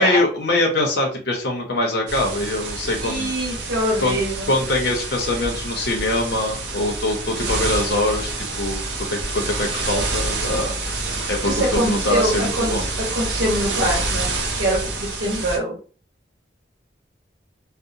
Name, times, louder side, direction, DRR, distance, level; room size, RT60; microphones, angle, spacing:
voice 1, 0.0-3.3 4.0-4.2 4.5-8.3 8.6-8.8 9.1-10.7 11.3-12.8, left 1 dB, 60° left, 0 dB, 0.6 m, -23 dB
sound 1, 2.1-15.6, right 2 dB, 70° right, 0.6 m, -27 dB
voice 2, 3.0-4.5 11.4-15.8, right 1 dB, 85° right, -6 dB, 1.1 m, -24 dB
2.8 x 2.0 x 2.5 m, 0.40 s
head